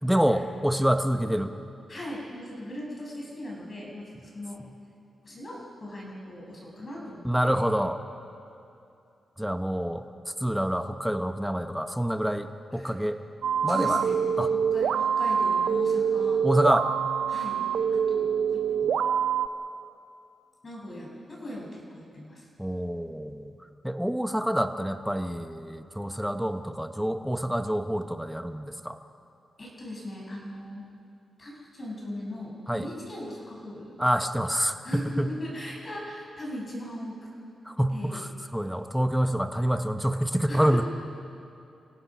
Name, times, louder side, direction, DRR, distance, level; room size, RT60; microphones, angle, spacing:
voice 1, 0.0-1.5 4.6-4.7 7.2-8.0 9.4-10.0 10.4-13.2 13.6-14.0 14.4-14.5 16.4-16.9 22.6-23.5 23.8-29.0 32.7-32.9 34.0-35.3 37.6-40.9, equal, ahead, 7 dB, 1.1 m, -27 dB
voice 2, 1.9-4.6 5.2-7.5 12.7-12.9 13.7-14.2 14.7-16.4 17.3-17.6 17.9-19.0 20.6-22.5 29.6-30.8 31.4-34.0 34.8-37.1 37.9-38.2 40.5-40.9, left 1 dB, 35° left, -3 dB, 7.2 m, -39 dB
sound 1, 13.4-19.5, right 7 dB, 85° right, 0.7 m, -25 dB
29.0 x 17.5 x 6.2 m, 2.7 s
cardioid pair, 100°, 0 cm